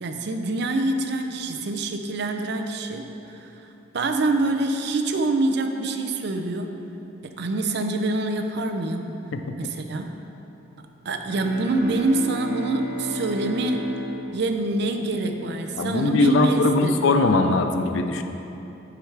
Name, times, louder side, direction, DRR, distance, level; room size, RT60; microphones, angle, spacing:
voice 1, 0.0-3.6 3.9-6.7 7.2-9.2 9.6-10.1 11.0-13.9 14.3-17.1, right 2 dB, 60° right, 5 dB, 0.5 m, -26 dB
Bowed string instrument, 11.2-15.5, left 1 dB, 10° right, 1.2 m, -34 dB
voice 2, 15.8-18.2, left 2 dB, 75° left, 6 dB, 0.4 m, -20 dB
9.8 x 4.7 x 3.3 m, 3.0 s
head